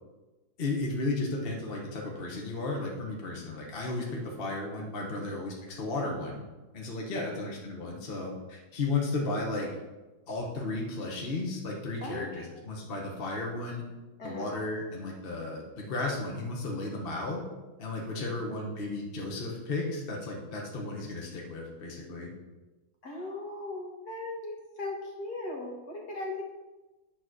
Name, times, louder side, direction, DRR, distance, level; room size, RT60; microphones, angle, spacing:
voice 1, 0.6-6.4 6.7-9.7 10.3-13.8 14.2-17.4 17.8-22.3, left 2 dB, 35° left, -1 dB, 1.1 m, -34 dB
voice 2, 12.0-12.5 14.2-14.5 18.1-18.4 23.0-26.4, left 2 dB, 50° left, -1 dB, 2.0 m, -38 dB
9.0 x 4.2 x 6.1 m, 1.1 s
omnidirectional pair, 2.3 m